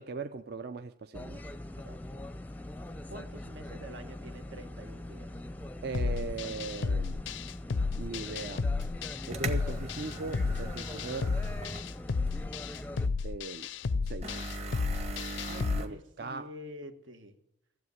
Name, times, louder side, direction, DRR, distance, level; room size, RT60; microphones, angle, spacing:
voice 1, 0.0-1.4 5.8-7.2 8.0-8.7 9.3-11.4 13.2-13.7 14.0-14.4 15.8-16.5, right 3 dB, 55° right, 9 dB, 0.5 m, -39 dB
sound 1, 1.1-13.1, left 1 dB, 10° left, 0.5 m, -42 dB
voice 2, 1.8-2.2 3.1-5.4 6.6-6.7 15.4-17.4, equal, 80° right, 7 dB, 1.5 m, -47 dB
sound 2, 5.9-15.8, left 4 dB, 75° left, 0.5 m, -32 dB
sound 3, 8.8-8.9 9.3-11.9 12.3-12.4 14.2-15.9, right 2 dB, 35° right, 1.3 m, -40 dB
15.5 x 8.0 x 9.6 m, 0.80 s
head